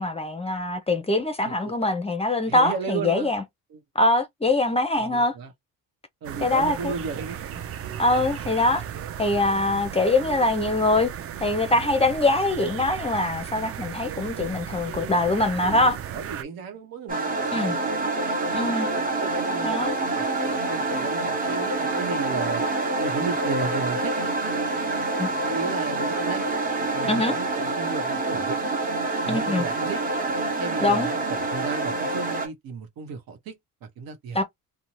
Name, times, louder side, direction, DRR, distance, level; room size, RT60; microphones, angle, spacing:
voice 1, 0.0-3.4 4.0-5.3 6.4-6.9 8.0-8.8 9.2-11.1 11.4-16.0 17.5-17.8 18.5-18.9 19.6-19.9 25.2-25.3 27.0-27.3 29.3-29.6 30.8-31.1 34.3-34.4, left 2 dB, 15° left, 0.5 m, -23 dB
voice 2, 1.4-1.7 2.5-3.3 3.7-3.8 5.0-5.5 6.2-7.6 15.6-17.8 18.6-22.6 23.0-24.2 25.4-26.5 26.9-28.6 29.2-30.0 30.6-34.4, right 5 dB, 70° right, 1.0 m, -34 dB
sound 1, 6.2-16.4, right 9 dB, 40° right, 0.4 m, -35 dB
sound 2, 17.1-32.5, right 2 dB, 25° right, 1.0 m, -27 dB
2.6 x 2.1 x 3.0 m
cardioid pair, 110°, 36 cm